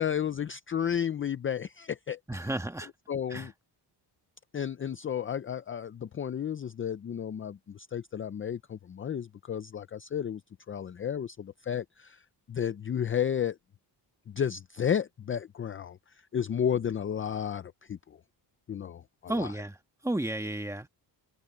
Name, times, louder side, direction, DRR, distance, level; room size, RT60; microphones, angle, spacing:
voice 1, 0.0-2.5 3.1-3.5 4.5-10.4 10.7-12.2 12.5-13.6 14.3-16.0 16.3-18.2 18.7-19.5, left 8 dB, 30° left, 0.4 m, -32 dB
voice 2, 2.3-2.9 3.3-3.5 19.3-19.8 20.0-20.9, right 1 dB, 5° right, 1.4 m, -32 dB
wide cardioid pair, 165°, 43 cm